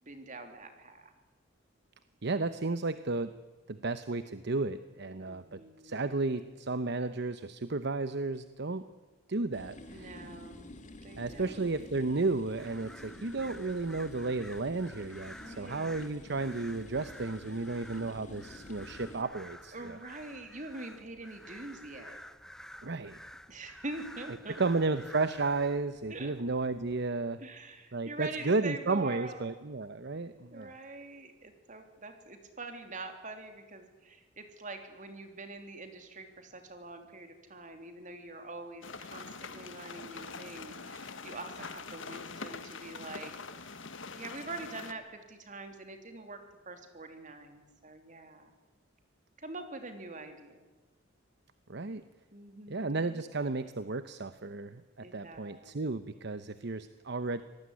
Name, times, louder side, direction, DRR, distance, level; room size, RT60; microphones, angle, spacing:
voice 1, 0.0-1.1 5.3-6.0 9.9-10.7 11.0-11.8 13.1-13.7 15.4-16.0 19.7-22.2 23.5-24.8 26.1-26.3 27.4-29.5 30.5-43.3 44.1-46.4 46.6-48.5 49.4-50.6 52.3-53.2 55.0-55.8, right 2 dB, 40° right, 6 dB, 3.2 m, -45 dB
voice 2, 2.2-3.4 3.7-8.9 9.3-10.3 11.2-20.0 22.8-23.2 24.6-27.4 27.9-30.7 51.7-52.0 52.7-57.4, right 3 dB, 60° right, 12 dB, 0.9 m, -33 dB
sound 1, 9.5-19.2, left 1 dB, 40° left, 2.4 m, -50 dB
sound 2, 12.6-27.1, equal, 5° left, 0.8 m, -51 dB
sound 3, 38.8-44.9, left 4 dB, 70° left, 1.6 m, -44 dB
26.0 x 19.0 x 9.8 m, 1.3 s
head